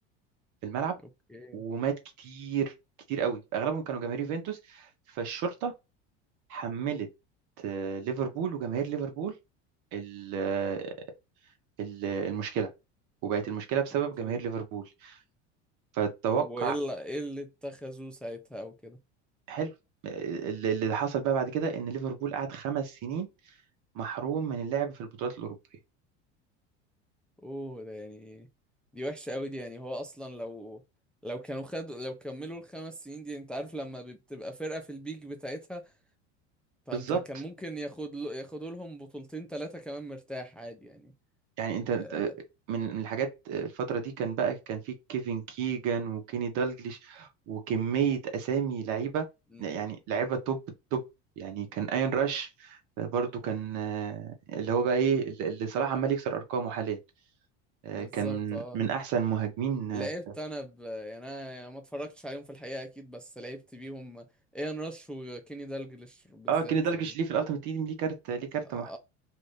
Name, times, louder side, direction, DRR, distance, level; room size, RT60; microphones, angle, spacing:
voice 1, 0.6-1.0 1.5-2.7 3.1-4.9 5.1-5.7 6.5-7.1 7.6-9.4 9.9-10.9 11.8-12.7 13.2-15.2 15.9-16.7 19.5-19.7 20.0-23.3 23.9-25.6 36.9-37.2 41.6-42.3 42.7-49.3 49.6-50.6 50.9-51.0 51.4-57.0 57.8-60.1 66.5-69.0, right 7 dB, 60° right, 1.1 m, -31 dB
voice 2, 1.3-1.6 14.2-14.4 16.4-19.0 27.4-28.5 28.9-30.8 31.2-35.9 36.9-41.1 42.0-42.3 49.5-49.8 57.9-58.8 59.9-67.0 68.6-69.0, equal, 5° left, 0.5 m, -39 dB
2.7 x 2.5 x 3.3 m
supercardioid pair, 95°, 35 cm